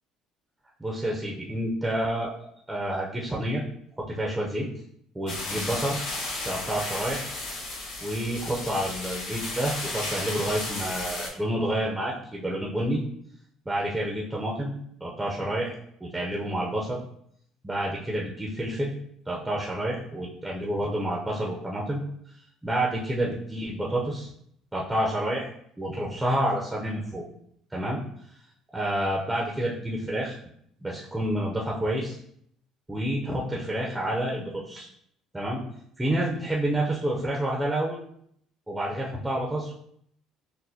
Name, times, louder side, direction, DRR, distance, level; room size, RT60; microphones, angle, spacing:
voice 1, 0.8-3.6 4.0-4.7 5.1-6.0 6.4-7.2 8.0-13.0 13.7-14.7 15.0-15.7 16.0-17.0 17.6-18.9 19.3-22.0 22.6-24.3 24.7-25.5 25.8-27.2 27.7-28.0 28.7-30.4 30.8-32.2 32.9-34.9 35.3-35.6 36.0-38.0 38.7-39.7, right 1 dB, 10° right, -3 dB, 0.5 m, -29 dB
sound 1, 5.3-11.3, left 2 dB, 85° left, 1.1 m, -34 dB
6.1 x 2.1 x 2.7 m, 0.69 s
cardioid pair, 130°, 0 cm